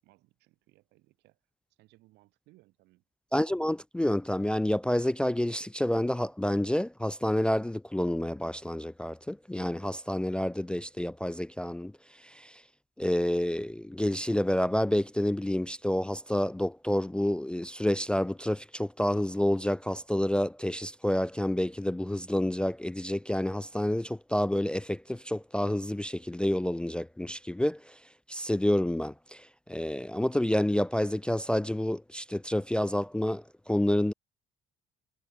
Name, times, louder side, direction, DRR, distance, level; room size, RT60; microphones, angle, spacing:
voice 1, 0.0-1.4 1.7-3.0, right 20 dB, 90° right, 8.0 m, -63 dB
voice 2, 3.3-11.9 12.2-12.5 13.0-27.8 28.3-29.4 29.7-34.1, left 1 dB, 5° left, 0.3 m, -29 dB
cardioid pair, 110°, 17 cm